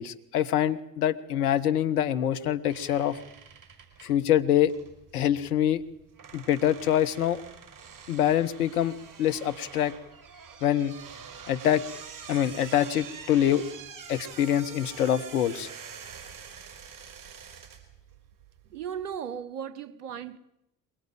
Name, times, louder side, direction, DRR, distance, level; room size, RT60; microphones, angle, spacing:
voice 1, 0.0-3.2 4.0-4.7 5.1-5.8 6.3-7.4 8.1-9.9 10.6-10.9 11.5-11.8 12.3-13.6 14.1-15.7, left 10 dB, 70° left, 1.3 m, -25 dB
sound 1, 2.7-19.2, right 6 dB, 45° right, 4.7 m, -46 dB
voice 2, 18.7-20.4, right 8 dB, 80° right, 1.0 m, -36 dB
23.0 x 22.5 x 7.7 m
figure-of-eight pair, 50°, 46 cm